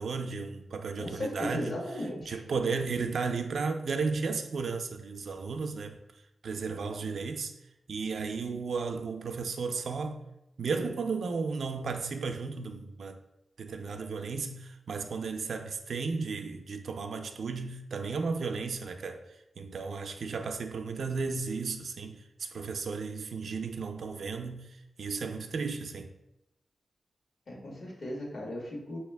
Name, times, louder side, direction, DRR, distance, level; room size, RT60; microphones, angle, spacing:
voice 1, 0.0-1.7 2.3-6.0 6.4-7.5 7.9-10.2 10.6-13.2 13.6-19.2 19.6-24.7 25.0-26.1, right 4 dB, 75° right, 0.4 m, -34 dB
voice 2, 1.0-2.4 27.5-29.0, left 1 dB, 55° left, 1.4 m, -36 dB
5.4 x 2.8 x 3.3 m
wide cardioid pair, 130°, 0 cm